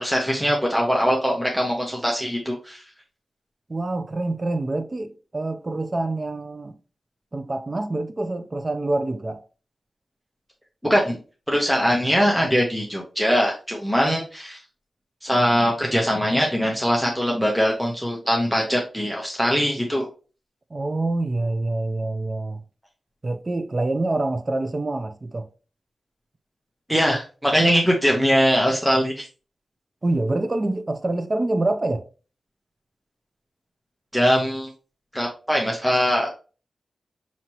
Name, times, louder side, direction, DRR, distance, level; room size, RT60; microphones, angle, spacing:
voice 1, 0.0-2.8 10.8-11.2 11.5-14.6 15.2-20.1 26.9-29.3 34.1-34.7 35.1-36.3, equal, 5° right, 0.8 m, -21 dB
voice 2, 3.7-6.8 7.3-9.4 20.7-22.6 23.2-25.5 30.0-32.1, right 2 dB, 30° right, 0.4 m, -26 dB
5.8 x 2.8 x 3.0 m
wide cardioid pair, 145°, 0 cm